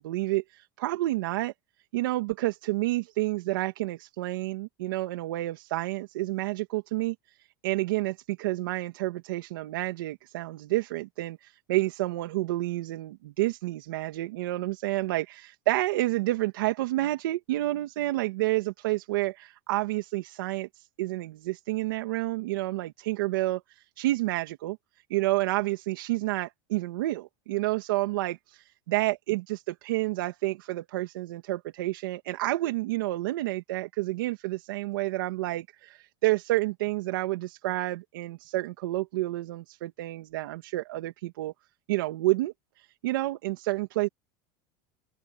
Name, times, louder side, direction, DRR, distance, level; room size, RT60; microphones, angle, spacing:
voice 1, 0.0-1.5 1.9-7.4 7.6-24.8 25.1-41.5 41.9-44.1, right 18 dB, 85° right, 2.4 m, -29 dB
open air
supercardioid pair, 170°, 11 cm